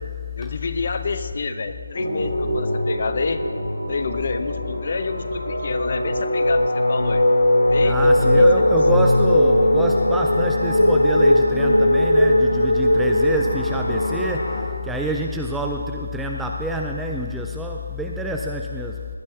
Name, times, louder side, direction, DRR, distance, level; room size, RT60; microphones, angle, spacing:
voice 1, 0.4-3.4 3.9-7.3 7.7-8.5, left 4 dB, 45° left, 10 dB, 0.7 m, -28 dB
sound 1, 1.9-14.6, left 1 dB, 85° left, 3.4 m, -19 dB
voice 2, 7.8-19.1, equal, 5° right, 1 dB, 0.3 m, -27 dB
18.0 x 11.0 x 2.8 m, 2.1 s
figure-of-eight pair, 170°, 0 cm